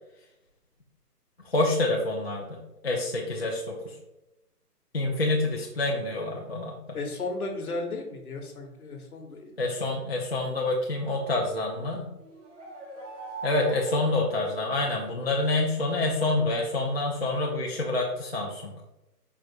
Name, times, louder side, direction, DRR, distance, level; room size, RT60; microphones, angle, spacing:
voice 1, 1.4-3.9 4.9-7.0 9.6-12.1 13.4-18.7, left 2 dB, 40° left, -3 dB, 0.5 m, -27 dB
voice 2, 6.9-9.5, left 2 dB, 65° left, 3 dB, 1.1 m, -34 dB
sound 1, 12.2-15.1, right 3 dB, 50° right, 1.1 m, -43 dB
4.6 x 2.5 x 4.2 m, 0.92 s
hypercardioid pair, 175°, 48 cm